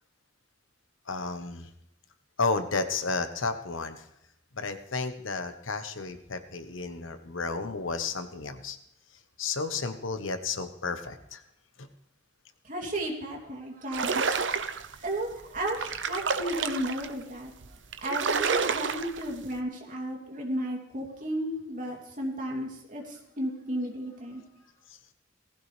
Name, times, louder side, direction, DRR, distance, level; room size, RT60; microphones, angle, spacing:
voice 1, 1.1-1.7 2.4-4.0 4.5-8.8 9.4-11.4 11.8-11.9 24.9-25.0, left 4 dB, 90° left, 9 dB, 1.2 m, -32 dB
voice 2, 12.6-14.3 14.5-14.7 15.0-17.5 18.0-24.4, right 1 dB, 45° right, -1 dB, 3.0 m, -34 dB
sound 1, 13.9-15.0 15.5-17.1 17.6-17.7 17.9-19.3, right 5 dB, 65° right, 0.8 m, -29 dB
18.0 x 15.5 x 3.4 m, 0.82 s
head